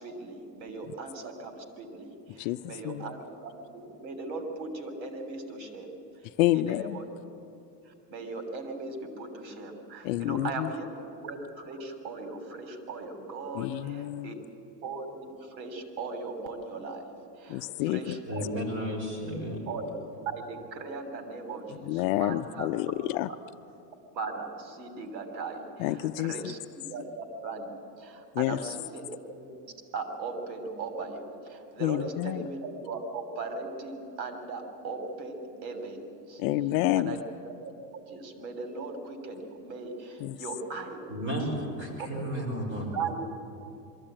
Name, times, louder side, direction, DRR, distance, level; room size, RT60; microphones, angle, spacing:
voice 1, 0.0-3.5 3.8-6.0 6.5-7.0 7.8-10.9 11.2-14.4 14.8-17.7 17.9-18.6 19.7-22.7 24.1-26.6 26.9-29.1 29.3-36.4 36.9-37.2 37.4-37.5 37.9-41.2 41.8-42.3 42.9-43.3, right 3 dB, 90° right, 6 dB, 3.2 m, -38 dB
voice 2, 2.4-3.2 6.4-7.0 10.0-10.7 13.5-14.4 17.5-18.2 21.8-23.3 25.8-26.5 28.3-28.6 31.8-32.5 36.4-37.2 40.2-40.4, left 15 dB, 55° left, 11 dB, 0.6 m, -29 dB
voice 3, 18.3-19.6 41.1-42.9, equal, 25° right, -1 dB, 5.0 m, -33 dB
22.5 x 14.5 x 8.8 m, 2.7 s
supercardioid pair, 150°, 50 cm